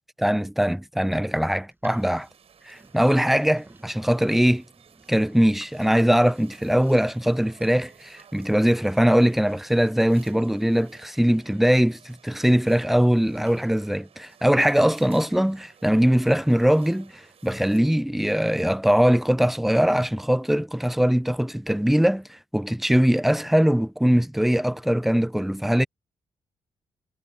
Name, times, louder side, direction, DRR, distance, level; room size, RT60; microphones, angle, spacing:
voice 1, 0.2-2.3 2.7-4.6 5.1-25.9, equal, ahead, 0.3 m, -21 dB
sound 1, 1.6-9.2, right 2 dB, 15° right, 6.6 m, -55 dB
sound 2, 2.0-17.8, right 8 dB, 55° right, 5.5 m, -55 dB
figure-of-eight pair, 40°, 12 cm